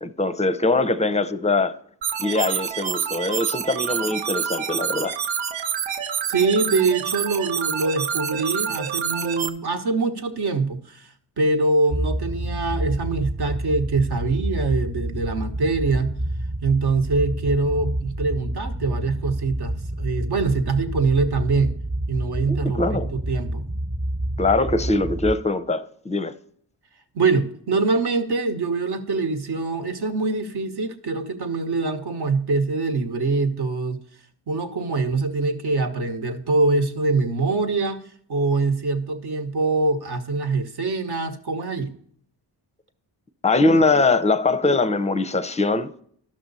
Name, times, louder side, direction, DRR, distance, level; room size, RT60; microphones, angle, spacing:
voice 1, 0.0-1.8 2.2-5.2 22.5-23.1 24.4-26.3 43.4-45.9, left 3 dB, 15° left, 0.6 m, -22 dB
sound 1, 2.0-9.5, right 8 dB, 75° right, 0.7 m, -27 dB
voice 2, 6.3-16.2 16.6-21.7 22.1-23.6 27.1-34.0 34.5-38.0 38.3-41.9, right 3 dB, 55° right, 1.1 m, -24 dB
sound 2, 11.9-25.3, right 1 dB, 30° right, 1.2 m, -29 dB
12.0 x 6.1 x 4.1 m
supercardioid pair, 50°, 47 cm